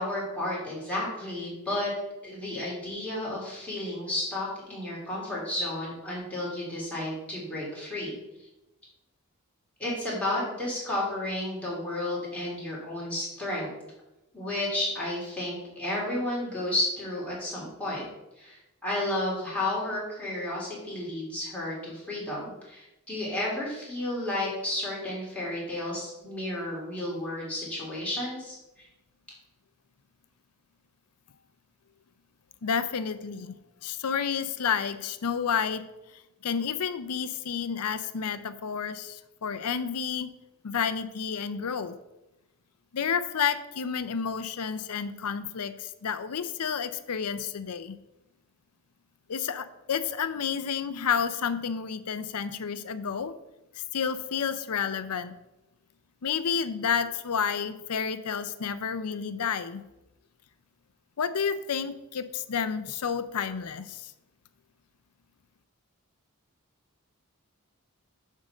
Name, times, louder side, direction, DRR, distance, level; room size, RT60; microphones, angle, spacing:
voice 1, 0.0-1.9 2.2-8.2 9.8-13.7 14.3-18.1 18.4-28.9, left 1 dB, 5° left, -7 dB, 3.0 m, -32 dB
voice 2, 32.6-35.9 36.4-40.3 40.6-41.9 42.9-48.0 49.3-53.3 53.9-55.3 56.2-59.8 61.2-64.1, left 7 dB, 85° left, 12 dB, 0.6 m, -30 dB
7.4 x 3.7 x 6.5 m, 0.96 s
head